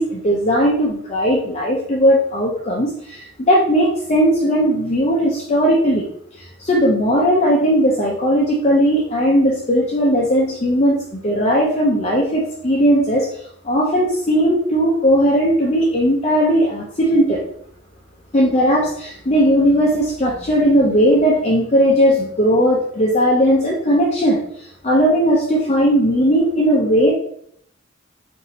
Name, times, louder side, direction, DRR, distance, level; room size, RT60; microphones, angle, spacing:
voice 1, 0.0-6.1 6.4-13.3 13.6-17.4 18.3-27.1, equal, 35° left, -3 dB, 0.6 m, -17 dB
4.0 x 2.6 x 4.1 m, 0.67 s
head